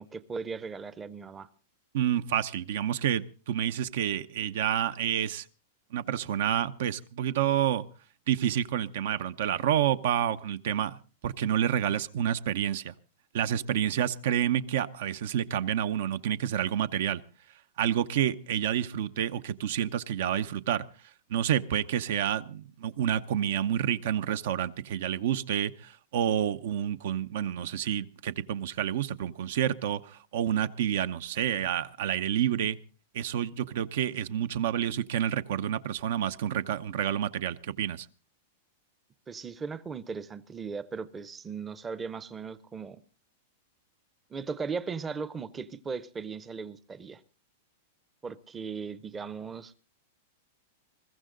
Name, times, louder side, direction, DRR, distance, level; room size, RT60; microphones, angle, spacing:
voice 1, 0.0-1.5 39.3-43.0 44.3-47.2 48.2-49.7, right 5 dB, 15° right, 0.7 m, -37 dB
voice 2, 1.9-5.4 5.9-7.8 8.3-10.9 11.2-12.9 13.3-17.2 17.8-20.8 21.3-32.8 33.1-38.1, right 10 dB, 70° right, 0.7 m, -29 dB
21.5 x 14.5 x 3.9 m
supercardioid pair, 145°, 0 cm